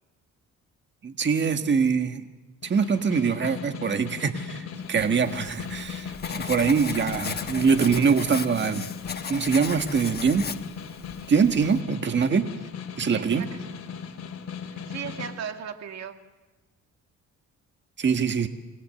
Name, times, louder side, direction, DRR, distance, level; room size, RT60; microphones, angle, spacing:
voice 1, 1.0-2.2 2.6-8.9 9.3-10.6 11.3-12.5 13.0-13.5 18.0-18.5, right 6 dB, 40° right, 7 dB, 1.6 m, -23 dB
Snare drum, 2.6-15.4, left 7 dB, 55° left, 3.3 m, -38 dB
Writing, 5.1-11.8, left 6 dB, 35° left, 1.2 m, -37 dB
voice 2, 13.0-13.8 14.7-16.2, right 8 dB, 60° right, 6 dB, 2.2 m, -37 dB
28.0 x 20.0 x 7.7 m, 1.2 s
cardioid pair, 90°, 30 cm